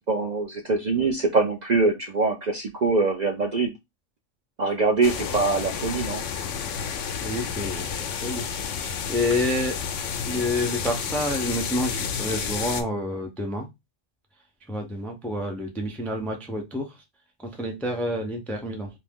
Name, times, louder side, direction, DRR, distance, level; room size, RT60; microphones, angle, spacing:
voice 1, 0.1-3.7 4.6-6.2, right 3 dB, 50° right, 2 dB, 0.5 m, -23 dB
sound 1, 5.0-12.8, left 7 dB, 85° left, 0.9 m, -30 dB
voice 2, 7.2-9.8 10.3-13.6 14.7-16.9 17.4-18.9, left 1 dB, ahead, 3 dB, 0.3 m, -29 dB
2.8 x 2.5 x 3.5 m, 0.21 s
omnidirectional pair, 1.2 m